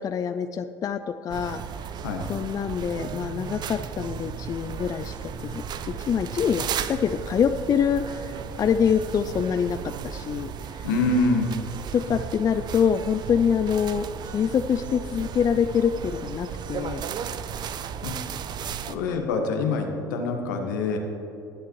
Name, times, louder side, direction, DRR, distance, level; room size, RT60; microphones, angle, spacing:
voice 1, 0.0-1.6 2.3-9.8 10.0-10.5 11.9-17.0 19.2-19.3, left 7 dB, 35° left, 9 dB, 0.4 m, -25 dB
sound 1, 1.3-18.9, right 8 dB, 45° right, 0.6 m, -35 dB
voice 2, 10.8-11.5 18.0-18.2 18.9-21.0, left 3 dB, 80° left, 3 dB, 1.4 m, -25 dB
19.0 x 8.2 x 3.2 m, 2.9 s
hypercardioid pair, 65°, 10 cm